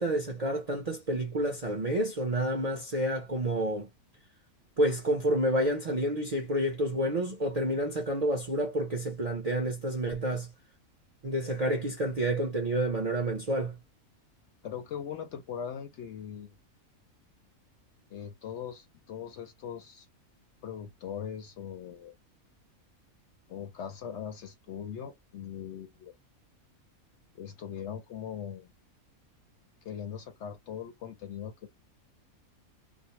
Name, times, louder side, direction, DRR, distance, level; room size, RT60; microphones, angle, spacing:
voice 1, 0.0-3.9 4.8-10.5 11.2-13.8, right 1 dB, 45° right, 0.5 m, -29 dB
voice 2, 14.6-16.6 18.1-20.1 20.6-22.1 23.5-26.1 27.3-28.7 29.8-31.5, left 8 dB, 65° left, 0.7 m, -40 dB
2.5 x 2.0 x 2.8 m
omnidirectional pair, 1.5 m